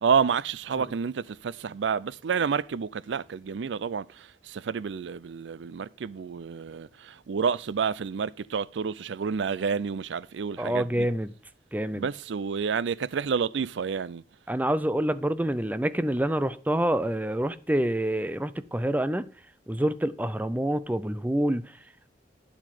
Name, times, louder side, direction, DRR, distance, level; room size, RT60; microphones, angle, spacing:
voice 1, 0.0-11.1 11.9-14.2, right 6 dB, 85° right, 0.4 m, -29 dB
voice 2, 10.6-11.3 11.7-12.1 14.5-19.3 19.7-21.7, right 1 dB, 10° right, 0.4 m, -27 dB
9.6 x 7.4 x 4.9 m
head